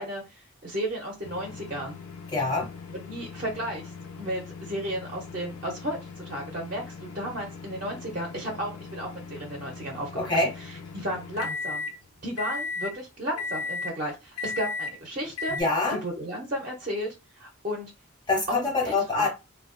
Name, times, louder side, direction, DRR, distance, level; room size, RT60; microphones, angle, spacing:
voice 1, 0.0-2.0 2.9-10.1 10.9-11.8 12.2-15.6 16.0-17.9 18.8-19.3, equal, 40° right, 0.5 m, -34 dB
sound 1, 1.2-11.9 12.4-12.9 13.4-13.9 14.4-14.9 15.4-15.6, left 4 dB, 90° left, 0.5 m, -38 dB
voice 2, 2.3-2.7 10.1-10.5 15.5-16.0 18.3-19.3, left 3 dB, 20° left, 0.3 m, -25 dB
2.6 x 2.2 x 2.4 m
head